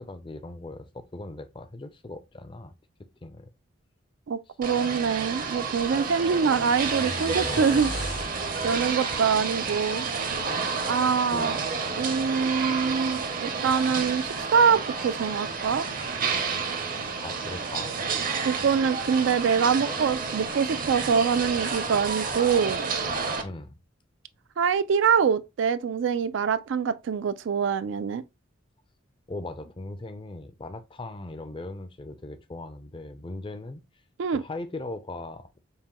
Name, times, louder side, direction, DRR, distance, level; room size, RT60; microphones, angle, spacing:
voice 1, 0.0-2.7 3.2-3.5 7.0-7.6 11.2-11.8 17.0-17.9 23.4-23.8 29.3-33.8 34.3-35.6, left 2 dB, 25° left, 0.4 m, -39 dB
voice 2, 4.3-7.9 8.6-10.1 10.9-11.6 12.0-15.8 18.4-22.8 24.6-28.2 34.2-34.4, right 6 dB, 70° right, 0.4 m, -24 dB
sound 1, 4.6-23.4, right 5 dB, 45° right, 0.7 m, -30 dB
sound 2, 6.3-10.4, left 1 dB, 75° left, 1.8 m, -39 dB
5.4 x 2.2 x 2.9 m
head